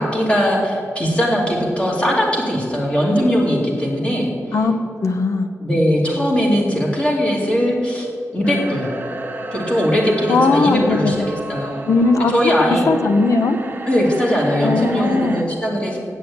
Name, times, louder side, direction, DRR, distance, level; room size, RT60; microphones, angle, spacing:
voice 1, 0.0-4.3 5.6-8.1 8.3-8.9 9.5-11.9 12.3-12.9 13.9-16.0, equal, 20° left, -2 dB, 2.2 m, -19 dB
voice 2, 5.0-5.5 10.3-11.2 11.9-12.3 12.9-13.6 14.6-15.4, left 3 dB, 70° left, 7 dB, 0.8 m, -18 dB
sound 1, 8.4-15.4, right 2 dB, 35° right, 1.0 m, -31 dB
8.3 x 7.4 x 8.5 m, 2.3 s
wide cardioid pair, 135°, 6 cm